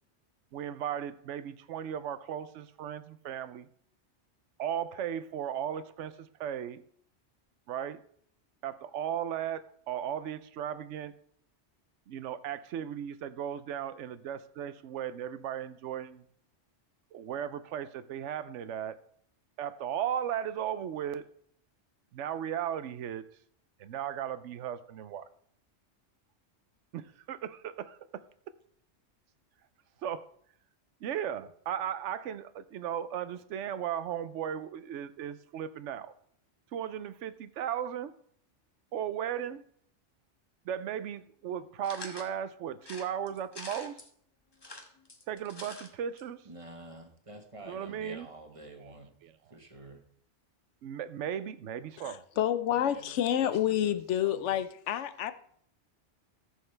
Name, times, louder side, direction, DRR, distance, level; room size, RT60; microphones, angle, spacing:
voice 1, 0.5-3.7 4.6-6.8 7.7-8.0 8.6-11.1 12.1-16.2 17.1-19.0 19.6-21.2 22.1-23.2 23.8-25.2 26.9-27.0 27.3-28.2 30.0-30.3 31.0-36.1 36.7-38.1 38.9-39.6 40.6-44.0 45.3-46.4 47.7-48.3 48.8-48.9 49.2-49.6 50.8-52.2, right 9 dB, 85° right, 13 dB, 0.9 m, -36 dB
sound 1, 41.8-42.3 42.8-44.1 44.5-45.9 46.2-46.3 46.5-46.6, left 2 dB, 20° left, 1.0 m, -45 dB
voice 2, 46.4-49.1 49.5-50.0 52.7-54.0 54.2-54.6, right 2 dB, 30° right, 4 dB, 1.3 m, -48 dB
voice 3, 52.0-55.3, left 11 dB, 80° left, 12 dB, 0.9 m, -29 dB
14.0 x 6.6 x 3.3 m, 0.63 s
omnidirectional pair, 1.2 m